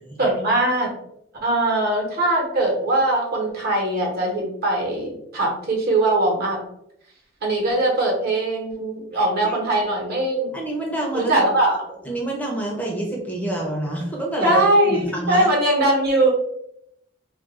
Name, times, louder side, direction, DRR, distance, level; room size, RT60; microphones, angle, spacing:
voice 1, 0.2-0.9 1.4-6.6 7.4-10.5 11.1-11.8 14.4-16.3, right 1 dB, 55° right, -1 dB, 1.0 m, -21 dB
voice 2, 9.1-9.6 10.5-11.4 12.0-15.5, right 1 dB, 10° left, -1 dB, 0.5 m, -28 dB
2.4 x 2.2 x 4.0 m, 0.76 s
head